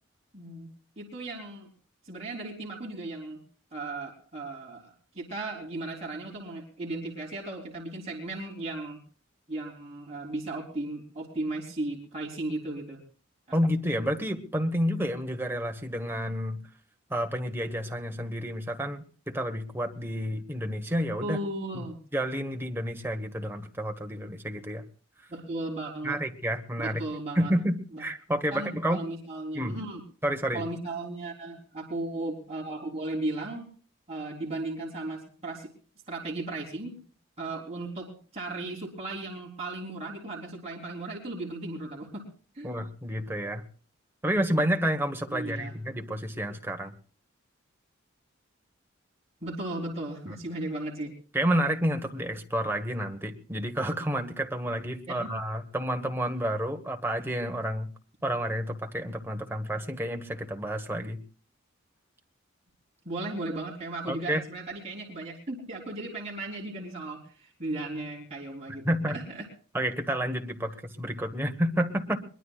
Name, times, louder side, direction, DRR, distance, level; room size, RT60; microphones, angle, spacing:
voice 1, 0.3-0.7 1.0-1.7 2.0-3.4 3.7-9.0 9.5-13.0 21.2-22.0 25.3-26.2 26.8-27.5 27.9-28.0 28.5-30.0 30.5-33.6 34.1-35.7 36.1-37.0 37.4-42.3 42.5-42.7 45.3-45.7 49.4-51.1 55.1-55.3 63.1-69.5, right 2 dB, 30° right, -3 dB, 3.7 m, -36 dB
voice 2, 13.5-16.6 17.1-21.4 21.7-21.9 22.1-24.8 26.0-27.0 27.3-29.0 29.5-29.8 30.2-30.6 42.6-43.6 44.2-46.9 50.3-50.4 51.3-57.9 58.2-61.2 64.1-64.4 68.8-69.2 69.7-72.2, equal, 10° right, 4 dB, 1.3 m, -30 dB
23.0 x 21.0 x 2.4 m, 0.41 s
head